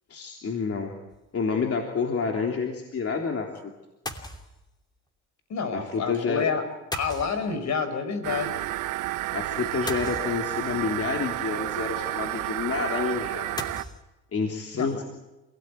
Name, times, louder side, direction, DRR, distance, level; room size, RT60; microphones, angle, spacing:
voice 1, 0.1-0.9 1.3-3.7 5.7-6.5 9.3-13.5 14.3-15.0, left 5 dB, 50° left, 1 dB, 3.4 m, -29 dB
sound 1, 1.1-1.4 4.1-4.7 6.9-7.8 9.9-10.8 13.6-14.0, left 1 dB, 15° left, 2.9 m, -37 dB
voice 2, 5.5-6.6 6.9-8.5 14.7-15.0, left 5 dB, 65° left, 9 dB, 5.2 m, -28 dB
sound 2, 8.2-13.8, right 15 dB, 90° right, 0.9 m, -31 dB
27.5 x 17.5 x 9.3 m, 1.0 s
cardioid pair, 90°, 30 cm